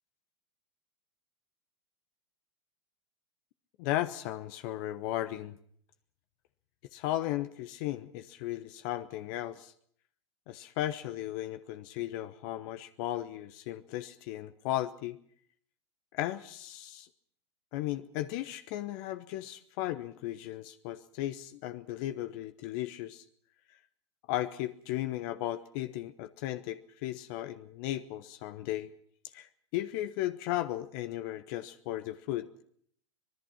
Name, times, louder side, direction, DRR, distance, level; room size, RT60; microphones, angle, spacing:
voice 1, 3.8-5.6 6.9-9.7 10.5-15.2 16.1-17.1 17.7-23.2 24.3-28.9 29.3-32.5, left 14 dB, 50° left, 10 dB, 1.1 m, -35 dB
25.0 x 20.5 x 5.9 m, 0.62 s
figure-of-eight pair, 95°, 15 cm